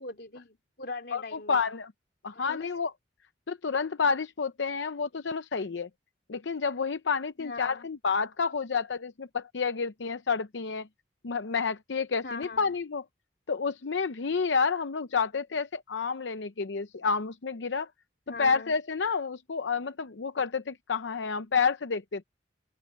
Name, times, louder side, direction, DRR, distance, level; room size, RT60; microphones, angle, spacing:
voice 1, 0.0-1.8 2.3-2.7 7.4-7.9 12.2-12.7 18.3-18.7, left 3 dB, 60° left, 3.8 m, -41 dB
voice 2, 1.1-1.9 2.2-2.9 3.5-5.9 6.3-10.9 11.2-13.0 13.5-17.9 18.4-22.2, left 5 dB, 80° left, 0.7 m, -29 dB
head